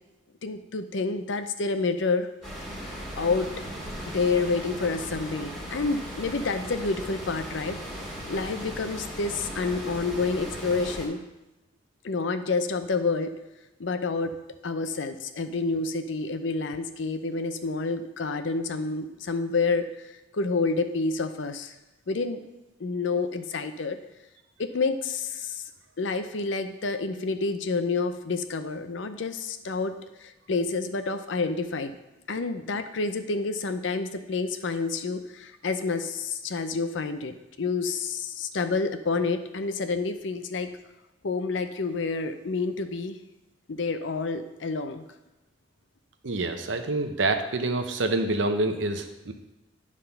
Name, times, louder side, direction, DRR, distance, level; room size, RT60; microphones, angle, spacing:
voice 1, 0.4-2.3 2.8-2.9 3.2-3.5 4.1-7.8 8.3-11.2 12.0-13.3 13.8-14.3 14.6-21.7 22.1-22.4 22.8-24.0 24.6-25.6 26.0-32.0 32.3-40.7 41.2-43.2 43.7-45.0, left 4 dB, 80° left, 9 dB, 0.6 m, -29 dB
sound 1, 2.4-11.1, equal, 5° left, 1.8 m, -37 dB
voice 2, 46.2-49.3, right 2 dB, 80° right, 6 dB, 0.8 m, -27 dB
9.8 x 3.7 x 5.6 m, 0.99 s
head